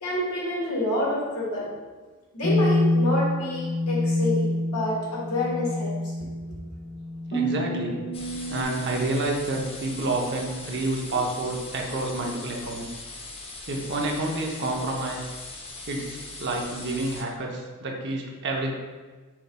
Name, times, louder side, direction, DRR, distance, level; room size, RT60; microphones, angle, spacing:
voice 1, 0.0-1.7 2.3-6.1, left 1 dB, 75° left, -4 dB, 1.3 m, -28 dB
sound 1, 2.4-8.6, left 1 dB, 45° left, 1.2 m, -27 dB
voice 2, 7.3-8.0 8.5-13.0 13.7-15.3 15.9-18.7, right 2 dB, 50° right, 0 dB, 0.7 m, -29 dB
sound 2, 8.1-17.2, left 3 dB, 25° left, 0.5 m, -40 dB
5.8 x 4.0 x 2.2 m, 1.4 s
head